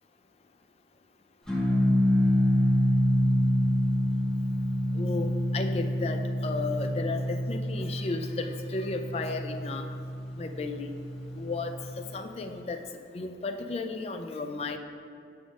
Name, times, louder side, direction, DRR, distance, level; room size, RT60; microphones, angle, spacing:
sound 1, 1.5-12.0, equal, 5° left, 1.1 m, -27 dB
voice 1, 4.9-9.9 10.4-10.9 11.4-12.8 13.1-14.8, left 3 dB, 35° left, 6 dB, 0.4 m, -34 dB
6.2 x 3.6 x 6.1 m, 2.5 s
head